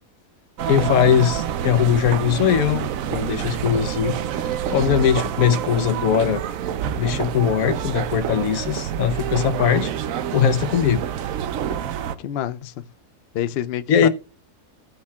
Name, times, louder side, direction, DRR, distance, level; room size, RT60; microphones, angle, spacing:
sound 1, 0.6-12.1, right 9 dB, 70° right, 1.0 m, -27 dB
voice 1, 0.7-4.1 4.7-6.4 7.0-9.9 10.3-11.0 11.7-11.8 13.9-14.1, left 8 dB, 70° left, 1.2 m, -20 dB
voice 2, 12.2-12.7 13.3-14.1, left 11 dB, 85° left, 0.5 m, -27 dB
16.5 x 5.6 x 2.3 m
omnidirectional pair, 1.6 m